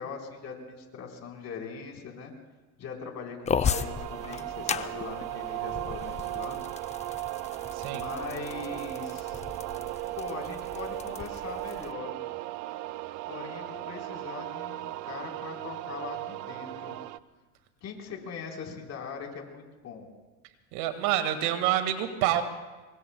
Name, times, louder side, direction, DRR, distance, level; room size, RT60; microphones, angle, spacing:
voice 1, 0.0-2.3 2.8-6.6 7.9-9.4 10.2-12.1 13.3-17.0 17.8-20.1, left 5 dB, 35° left, 1 dB, 4.0 m, -41 dB
sound 1, 3.5-11.9, left 7 dB, 15° left, 0.5 m, -36 dB
sound 2, 3.6-17.2, right 17 dB, 40° right, 0.6 m, -37 dB
voice 2, 20.7-22.4, right 12 dB, 60° right, 8 dB, 1.9 m, -27 dB
27.0 x 24.0 x 2.2 m, 1.2 s
hypercardioid pair, 100°, 44 cm